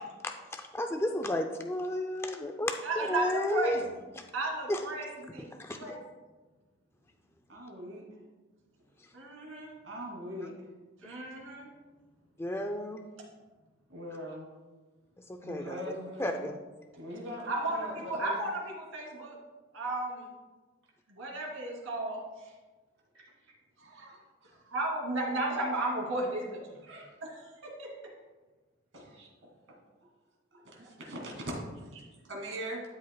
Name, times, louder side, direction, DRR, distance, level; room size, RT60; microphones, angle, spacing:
voice 1, 0.2-3.8 4.2-4.3 4.7-4.8 5.5-5.8 12.4-13.0 15.3-15.8 16.2-16.6, left 1 dB, 10° left, 4 dB, 0.4 m, -32 dB
voice 2, 2.8-3.9 4.3-5.5 5.7-5.9 9.1-9.7 11.0-11.7 17.5-19.4 19.7-20.3 21.1-22.5 24.0-24.1 24.7-26.8 27.2-27.9, right 2 dB, 90° right, -1 dB, 2.6 m, -34 dB
voice 3, 7.5-8.2 9.8-10.7 13.9-14.5 15.4-16.3 17.0-18.3 23.8-24.8 26.9-27.2 28.9-29.8 30.5-31.9 32.3-32.8, equal, 65° right, -1 dB, 2.5 m, -41 dB
12.5 x 7.6 x 2.3 m, 1.3 s
head